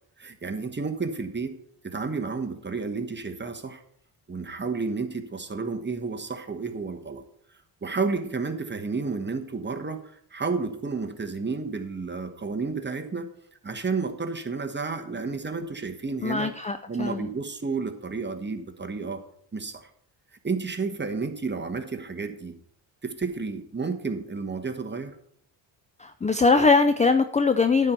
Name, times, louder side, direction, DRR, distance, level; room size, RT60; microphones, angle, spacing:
voice 1, 0.2-1.5 1.8-3.8 4.3-7.2 7.8-13.3 13.6-16.5 16.9-19.2 19.5-19.9 20.4-22.5 23.0-25.1, right 4 dB, 20° right, 6 dB, 1.2 m, -31 dB
voice 2, 16.2-17.3 26.0-27.9, left 4 dB, 15° left, 10 dB, 0.4 m, -21 dB
9.5 x 4.5 x 6.8 m, 0.68 s
cardioid pair, 70°, 49 cm